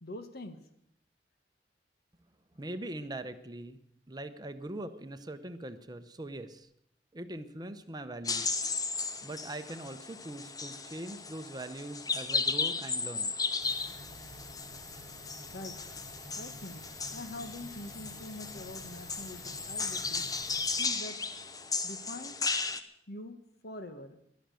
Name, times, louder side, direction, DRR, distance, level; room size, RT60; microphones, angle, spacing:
voice 1, 0.0-0.6 15.5-15.9 16.4-16.8 17.1-20.3 20.8-21.2 21.8-22.5 23.1-24.2, left 1 dB, 60° left, 8 dB, 1.5 m, -44 dB
voice 2, 2.5-3.8 4.1-6.7 7.1-8.6 9.2-13.3, right 1 dB, 25° right, 10 dB, 0.8 m, -42 dB
sound 1, 8.2-22.8, left 4 dB, 20° left, 0.8 m, -35 dB
sound 2, 13.6-20.8, left 1 dB, 85° left, 6.5 m, -50 dB
17.5 x 11.5 x 6.4 m, 0.74 s
head